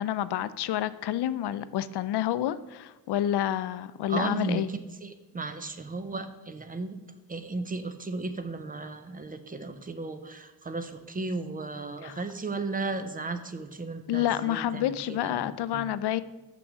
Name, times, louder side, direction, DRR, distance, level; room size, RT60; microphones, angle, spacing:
voice 1, 0.0-4.7 12.0-12.2 14.1-16.2, left 12 dB, 90° left, 15 dB, 0.5 m, -29 dB
voice 2, 4.1-7.0 7.3-15.9, right 3 dB, 20° right, 10 dB, 0.5 m, -35 dB
6.7 x 6.1 x 6.1 m, 1.1 s
wide cardioid pair, 165°, 39 cm